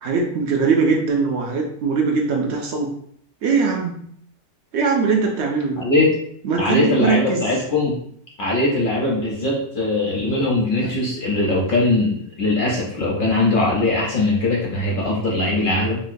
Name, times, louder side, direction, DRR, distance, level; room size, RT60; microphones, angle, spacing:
voice 1, 0.0-2.9 3.4-4.0 4.7-5.9 6.4-7.4, right 4 dB, 75° right, 1 dB, 0.6 m, -21 dB
voice 2, 5.8-6.2 6.6-8.0 8.4-16.0, left 2 dB, 50° left, -3 dB, 0.6 m, -20 dB
3.8 x 2.1 x 2.6 m, 0.65 s
omnidirectional pair, 1.7 m